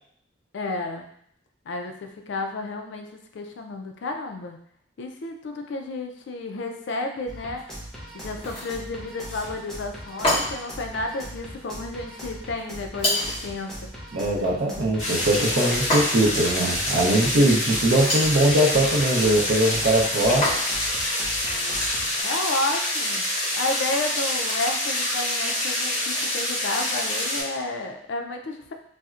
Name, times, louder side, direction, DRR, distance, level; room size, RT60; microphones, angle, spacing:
voice 1, 0.5-1.1 1.7-4.6 5.0-7.6 8.1-13.9 22.2-23.3 23.5-28.7, left 2 dB, 65° left, 4 dB, 0.4 m, -31 dB
sound 1, 7.3-22.2, equal, ahead, 0.5 m, -40 dB
sound 2, 8.3-8.8 10.2-10.8 13.0-13.5 15.9-16.4 17.9-18.4 20.4-20.9, left 1 dB, 30° left, 1.0 m, -26 dB
voice 2, 14.1-20.5, right 1 dB, 60° right, -3 dB, 0.6 m, -21 dB
sound 3, 15.0-27.4, left 1 dB, 80° left, 1.3 m, -26 dB
4.0 x 2.1 x 2.4 m, 0.67 s
head